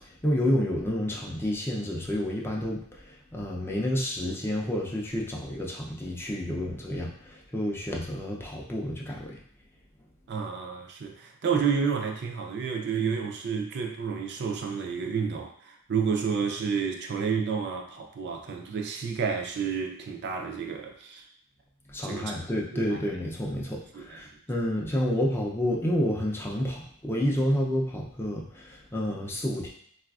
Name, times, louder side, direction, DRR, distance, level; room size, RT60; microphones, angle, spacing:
voice 1, 0.2-9.4 21.9-29.7, left 1 dB, 10° left, -2 dB, 0.4 m, -29 dB
voice 2, 10.3-21.3 22.0-22.3 22.7-23.0 23.7-24.2, right 6 dB, 50° right, 2 dB, 0.4 m, -30 dB
4.0 x 2.4 x 2.3 m, 0.63 s
head